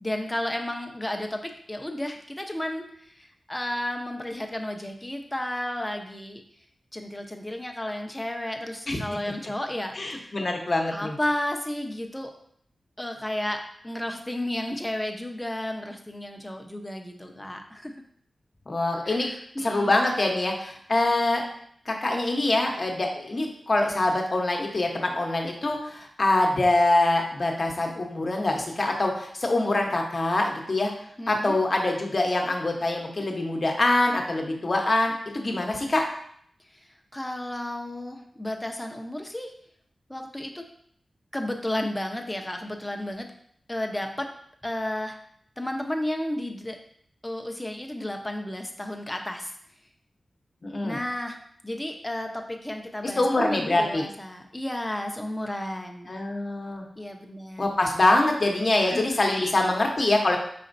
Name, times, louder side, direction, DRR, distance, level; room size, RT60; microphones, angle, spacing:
voice 1, 0.0-6.4 6.9-10.3 10.9-12.3 13.0-17.9 19.0-19.9 31.2-31.6 36.7-39.5 40.1-40.6 41.3-43.3 43.7-44.3 44.6-45.2 45.6-46.8 47.2-49.5 50.8-51.4 51.6-56.1 57.0-57.7 58.9-59.5, left 1 dB, 15° left, 4 dB, 0.7 m, -32 dB
voice 2, 9.9-11.1 18.7-19.3 19.6-21.4 21.9-30.9 31.3-36.0 50.6-51.0 53.0-54.0 56.1-56.9 57.6-60.4, left 2 dB, 50° left, 2 dB, 0.9 m, -24 dB
4.9 x 4.2 x 2.6 m, 0.65 s
cardioid pair, 50°, 0 cm